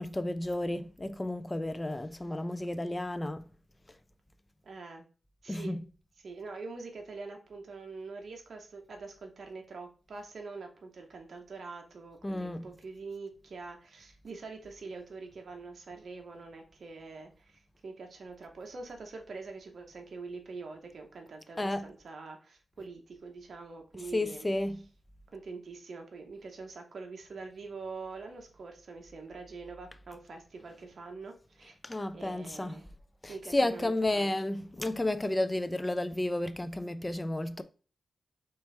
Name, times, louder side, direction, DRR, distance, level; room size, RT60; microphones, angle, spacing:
voice 1, 0.0-3.5 5.5-5.8 12.2-12.7 21.6-21.9 23.9-24.9 31.8-32.8 33.2-37.6, left 1 dB, 20° left, 0.4 m, -32 dB
voice 2, 4.6-5.0 5.4-5.8 6.2-24.5 25.3-31.8 32.1-32.9 33.3-34.3, right 4 dB, 65° right, 0.8 m, -44 dB
4.4 x 3.2 x 3.3 m
cardioid pair, 75°, 0 cm